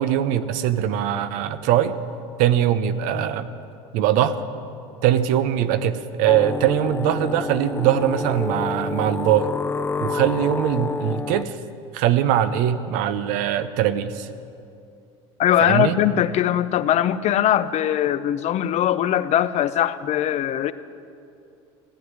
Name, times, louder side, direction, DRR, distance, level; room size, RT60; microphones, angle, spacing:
voice 1, 0.0-2.0 2.4-3.5 3.9-4.4 5.0-9.5 10.0-11.6 11.9-14.3 15.6-16.0, right 11 dB, 70° right, 0.9 m, -21 dB
sound 1, 6.3-11.4, left 4 dB, 15° left, 0.4 m, -28 dB
voice 2, 15.4-20.7, left 11 dB, 50° left, 0.7 m, -21 dB
15.0 x 9.7 x 9.4 m
hypercardioid pair, 85°, 15 cm